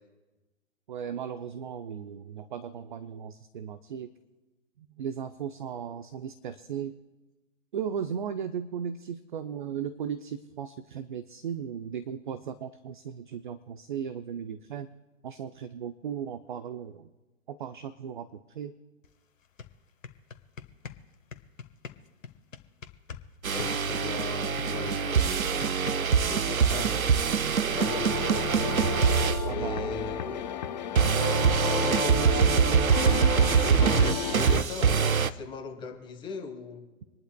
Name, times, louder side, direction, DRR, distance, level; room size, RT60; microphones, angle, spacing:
voice 1, 0.9-4.1 4.8-6.9 7.7-14.9 15.2-17.1 17.5-18.3 18.5-18.7 29.5-30.1 30.9-31.5, right 8 dB, 40° right, 11 dB, 0.5 m, -36 dB
sound 1, 19.0-19.1 19.4-23.3 23.6-26.3, left 6 dB, 70° left, 1.4 m, -43 dB
sound 2, 23.4-30.1 31.0-35.3, right 6 dB, 85° right, 0.8 m, -24 dB
voice 2, 23.5-25.7 26.3-27.1 27.6-28.6 29.4-30.5 31.7-33.1 33.5-36.8, left 4 dB, 10° left, 3 dB, 1.4 m, -39 dB
sound 3, 27.8-34.6, left 9 dB, 35° left, 0.6 m, -33 dB
27.0 x 11.5 x 2.2 m, 1.2 s
figure-of-eight pair, 135°, 40 cm